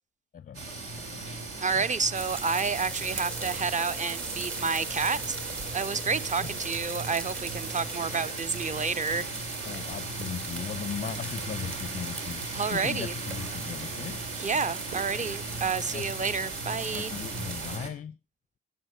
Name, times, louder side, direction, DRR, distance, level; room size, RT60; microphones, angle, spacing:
voice 1, 0.3-0.7 1.7-1.8 6.4-6.5 9.7-12.4 12.7-14.2 15.3-15.4 15.9-16.1 16.9-18.2, left 8 dB, 25° left, 0.5 m, -37 dB
sound 1, 0.5-17.9, right 2 dB, 65° right, 2.5 m, -38 dB
voice 2, 1.6-9.3 12.5-13.1 14.4-17.1, right 5 dB, 25° right, 0.8 m, -30 dB
sound 2, 2.1-17.8, right 4 dB, 40° right, 2.5 m, -39 dB
sound 3, 3.0-8.3, right 1 dB, 80° right, 1.9 m, -45 dB
15.5 x 7.6 x 5.8 m
figure-of-eight pair, 40°, 32 cm